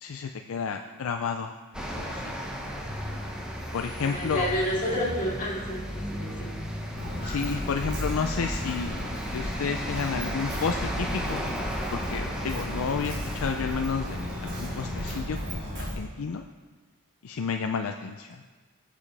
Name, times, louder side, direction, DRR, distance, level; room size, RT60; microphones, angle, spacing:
voice 1, 0.0-2.2 3.7-4.5 7.2-9.0 9.3-11.4 11.9-16.4 17.2-18.4, left 5 dB, 65° left, 6 dB, 0.4 m, -31 dB
sound 1, 1.7-15.2, equal, 5° right, 1.1 m, -36 dB
voice 2, 4.0-6.5, equal, 40° left, -4 dB, 3.0 m, -30 dB
Walk footsteps, 7.0-15.9, left 1 dB, 50° right, 3.4 m, -34 dB
16.5 x 7.2 x 3.4 m, 1.4 s
head